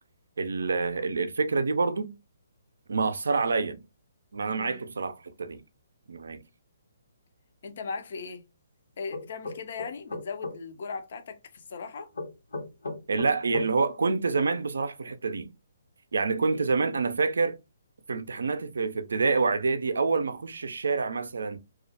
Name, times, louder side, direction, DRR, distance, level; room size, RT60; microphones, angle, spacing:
voice 1, 0.4-2.1 2.9-3.8 4.3-5.6 6.1-6.4 13.1-15.5 16.1-17.6 18.1-21.6, right 4 dB, 80° right, 0.4 m, -27 dB
voice 2, 7.6-8.4 9.0-12.1 16.5-16.7, left 5 dB, 55° left, 0.5 m, -38 dB
sound 1, 9.1-10.6 12.1-13.7, left 2 dB, 85° left, 1.0 m, -35 dB
2.4 x 2.1 x 2.6 m
hypercardioid pair, 150°, 0 cm